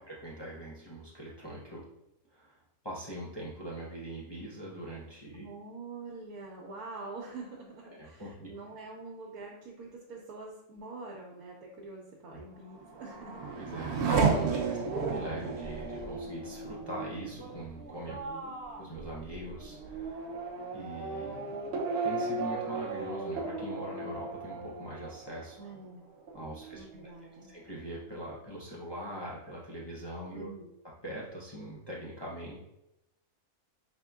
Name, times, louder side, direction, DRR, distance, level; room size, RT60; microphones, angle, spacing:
voice 1, 0.0-1.8 2.3-2.6 2.8-5.5 8.0-8.5 12.3-12.4 13.5-14.8 15.0-18.2 18.8-20.2 20.7-21.6 22.0-25.6 26.3-26.8 27.5-30.5 31.0-32.5, equal, 45° left, -6 dB, 0.3 m, -42 dB
voice 2, 5.3-13.4 14.7-14.9 18.2-18.5 25.6-26.0 26.7-27.5 30.3-30.7, right 3 dB, 80° right, -2 dB, 1.1 m, -45 dB
Race car auto racing / Accelerating revving vroom, 12.6-25.9 26.3-27.0, right 4 dB, 65° right, 0.7 m, -34 dB
4.3 x 3.6 x 2.3 m, 0.88 s
omnidirectional pair, 1.5 m